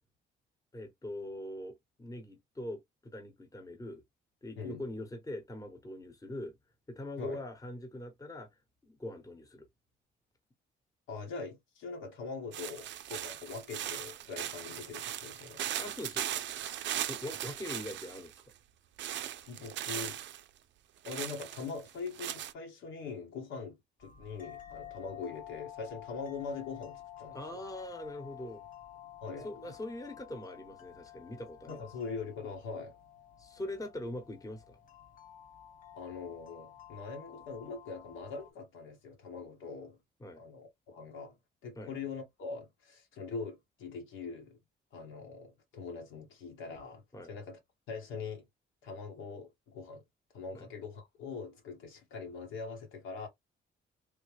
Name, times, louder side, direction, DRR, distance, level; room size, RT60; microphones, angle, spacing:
voice 1, 0.7-4.0 4.4-6.5 6.9-8.5 8.8-9.7 15.8-16.4 17.1-18.4 27.3-28.7 29.4-31.9 33.4-34.8 40.2-40.4 41.8-41.9 47.1-47.3 50.5-50.7, left 1 dB, 15° left, 1.0 m, -42 dB
voice 2, 11.1-15.6 19.5-20.2 21.0-27.6 29.2-29.7 31.7-33.0 35.9-40.0 40.4-41.3 41.6-44.6 44.9-47.0 47.3-47.6 47.9-48.4 48.8-50.0 50.3-53.3, left 4 dB, 80° left, 1.3 m, -42 dB
sound 1, 12.5-18.4 19.0-20.4 21.0-22.5, right 11 dB, 70° right, 0.5 m, -38 dB
sound 2, 24.0-38.5, left 11 dB, 45° left, 1.0 m, -51 dB
3.3 x 2.2 x 3.2 m
cardioid pair, 90°, 20 cm